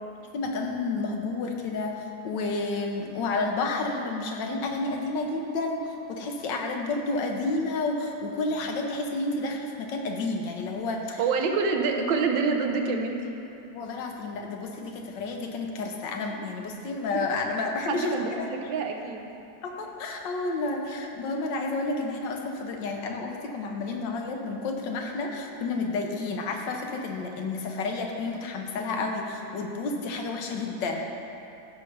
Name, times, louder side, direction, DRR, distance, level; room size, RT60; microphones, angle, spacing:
voice 1, 0.3-11.2 13.7-18.5 19.6-31.0, left 3 dB, 80° left, 2 dB, 1.5 m, -30 dB
voice 2, 11.2-13.2 17.9-19.3, right 4 dB, 85° right, 3 dB, 1.6 m, -26 dB
15.0 x 5.7 x 3.3 m, 2.8 s
omnidirectional pair, 2.0 m